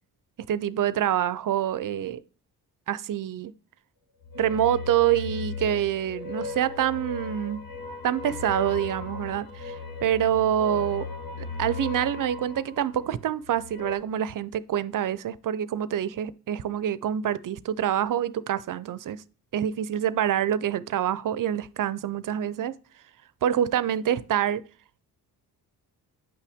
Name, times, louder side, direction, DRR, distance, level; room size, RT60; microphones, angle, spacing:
voice 1, 0.5-2.2 2.9-3.5 4.3-7.6 8.0-11.0 11.4-19.2 19.5-22.7 23.4-24.6, right 10 dB, 55° right, 0.5 m, -26 dB
sound 1, 4.2-14.0, left 4 dB, 60° left, 1.6 m, -37 dB
8.4 x 5.6 x 3.5 m
cardioid pair, 60°, 40 cm